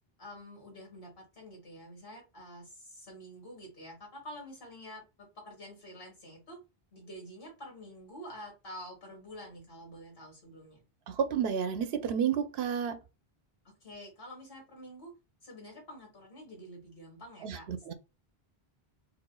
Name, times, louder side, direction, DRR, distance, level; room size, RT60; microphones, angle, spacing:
voice 1, 0.2-6.6 6.9-10.8 13.6-15.1 15.4-17.7, equal, 65° left, 1.9 m, -48 dB
voice 2, 11.1-13.0 17.4-17.9, right 8 dB, 85° right, 0.8 m, -31 dB
4.8 x 2.5 x 2.2 m
omnidirectional pair, 1.0 m